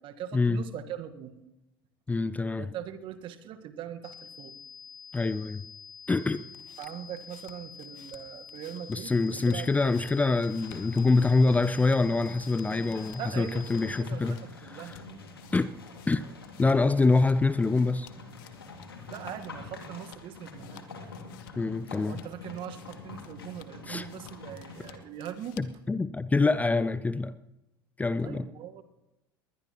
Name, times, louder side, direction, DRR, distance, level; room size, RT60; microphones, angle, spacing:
voice 1, 0.0-1.4 2.6-4.6 6.8-9.7 13.2-15.0 19.1-20.8 22.1-25.6 28.2-28.8, right 10 dB, 45° right, 8 dB, 1.5 m, -41 dB
voice 2, 2.1-2.7 5.1-5.6 6.1-6.4 8.9-14.4 15.5-15.7 16.1-16.2 16.6-18.1 21.6-22.2 23.9-24.1 25.6-27.3 28.0-28.5, left 3 dB, 10° left, 16 dB, 0.5 m, -25 dB
sound 1, 4.0-14.0, left 6 dB, 35° left, 1.3 m, -48 dB
sound 2, 6.3-25.9, left 11 dB, 60° left, 1.4 m, -57 dB
sound 3, 10.4-25.0, left 3 dB, 80° left, 2.4 m, -46 dB
20.5 x 20.5 x 3.0 m, 0.96 s
figure-of-eight pair, 70°, 12 cm